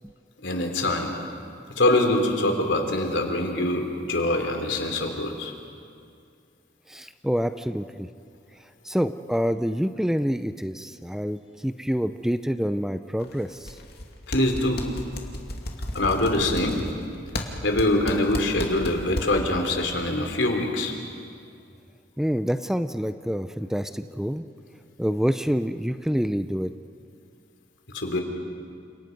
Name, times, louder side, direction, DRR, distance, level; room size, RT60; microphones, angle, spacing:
voice 1, 0.4-1.1 1.8-5.5 14.3-14.8 15.9-16.8 17.6-20.9 27.9-28.2, left 1 dB, 75° left, 3 dB, 3.4 m, -24 dB
voice 2, 6.9-8.1 8.8-13.8 22.2-24.4 25.0-26.7, equal, 5° right, 10 dB, 0.5 m, -27 dB
sound 1, 13.2-14.1 14.3-19.5, left 1 dB, 60° left, 2.5 m, -33 dB
30.0 x 28.0 x 5.3 m, 2.3 s
head